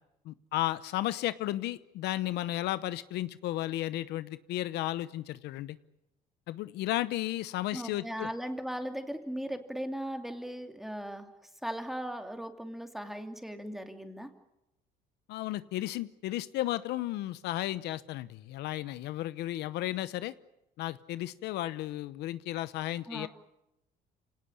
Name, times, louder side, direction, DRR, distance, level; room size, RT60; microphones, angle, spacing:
voice 1, 0.2-5.8 6.5-8.3 15.3-20.3 20.8-23.3, left 15 dB, 85° left, 15 dB, 0.9 m, -34 dB
voice 2, 7.7-11.3 11.6-14.3 23.1-23.3, equal, ahead, 6 dB, 2.6 m, -38 dB
26.5 x 18.5 x 9.8 m, 0.89 s
cardioid pair, 110°, 17 cm